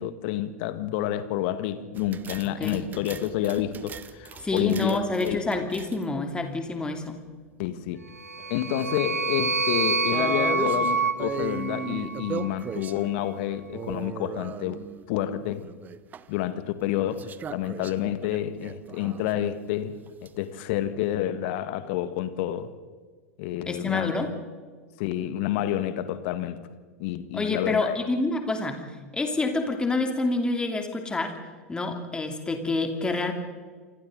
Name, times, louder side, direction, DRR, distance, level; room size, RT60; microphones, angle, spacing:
voice 1, 0.0-5.4 7.6-8.0 8.5-14.8 15.1-15.7 16.3-20.0 20.2-22.7 23.4-24.1 25.0-26.6 27.0-28.0, left 12 dB, 50° left, 12 dB, 1.7 m, -29 dB
sound 1, 1.9-6.2 8.1-9.2 9.5-9.6 10.1-13.1 13.7-15.1 15.4-16.2 17.1-19.5 20.1-20.3, right 8 dB, 20° right, 0.8 m, -38 dB
voice 2, 2.6-2.9 4.4-7.2 23.7-24.3 27.3-28.8 29.1-31.4 31.7-33.3, left 2 dB, 10° left, 5 dB, 2.9 m, -27 dB
sound 2, 8.2-12.5, right 4 dB, 85° right, 1.1 m, -27 dB
28.5 x 25.0 x 4.0 m, 1.5 s
figure-of-eight pair, 90°, 8 cm